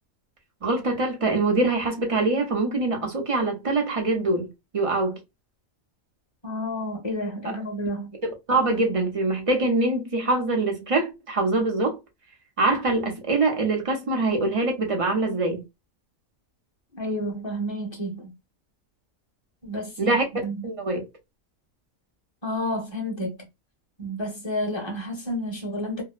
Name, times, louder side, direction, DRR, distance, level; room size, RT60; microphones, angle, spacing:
voice 1, 0.6-4.5 4.7-5.2 8.2-12.0 12.6-15.6 20.0-20.2 20.6-21.0, right 2 dB, 35° right, 0.6 m, -24 dB
voice 2, 6.4-8.2 17.0-18.3 19.6-20.7 22.4-23.4 24.0-26.0, equal, 25° left, 0.9 m, -30 dB
2.7 x 2.0 x 2.3 m
omnidirectional pair, 1.4 m